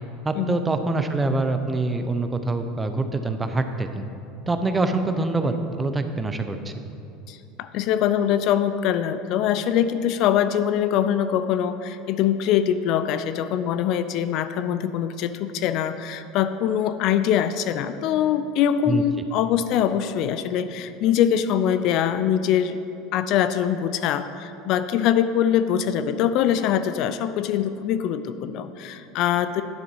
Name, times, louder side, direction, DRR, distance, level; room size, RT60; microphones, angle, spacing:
voice 1, 0.2-4.1 4.5-6.7 18.9-19.0, right 2 dB, 15° right, 8 dB, 0.5 m, -25 dB
voice 2, 7.3-22.8 23.1-29.6, left 9 dB, 55° left, 12 dB, 0.3 m, -23 dB
10.5 x 4.0 x 5.4 m, 2.7 s
supercardioid pair, 115°, 0 cm